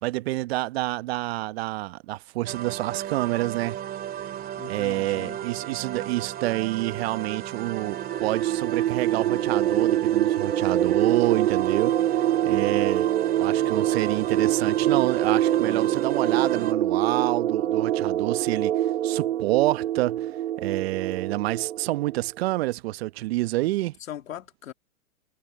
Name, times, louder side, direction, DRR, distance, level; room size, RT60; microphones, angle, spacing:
voice 1, 0.0-3.8 4.7-13.1 13.4-20.3 20.6-24.0, right 18 dB, 45° right, 1.1 m, -28 dB
sound 1, 2.5-16.7, right 11 dB, 20° right, 2.5 m, -35 dB
voice 2, 4.6-5.4 24.0-24.7, left 11 dB, 70° left, 3.1 m, -39 dB
sound 2, 7.9-22.2, right 12 dB, 65° right, 2.3 m, -25 dB
hypercardioid pair, 120°, 42 cm